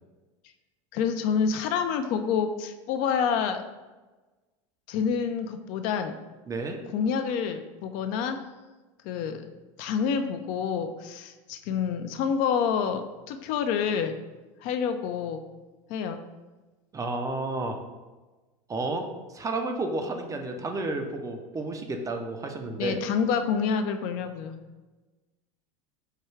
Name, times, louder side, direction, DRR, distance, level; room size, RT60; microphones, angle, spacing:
voice 1, 0.9-3.6 4.9-6.1 6.9-8.4 9.0-9.5 9.8-14.2 14.6-15.4 15.9-16.2 22.8-24.6, left 6 dB, 55° left, 8 dB, 0.4 m, -28 dB
voice 2, 6.5-6.8 16.9-17.8 18.7-19.1 19.3-23.0, right 2 dB, 20° right, 5 dB, 0.4 m, -31 dB
4.6 x 2.3 x 3.1 m, 1.2 s
hypercardioid pair, 95°, 17 cm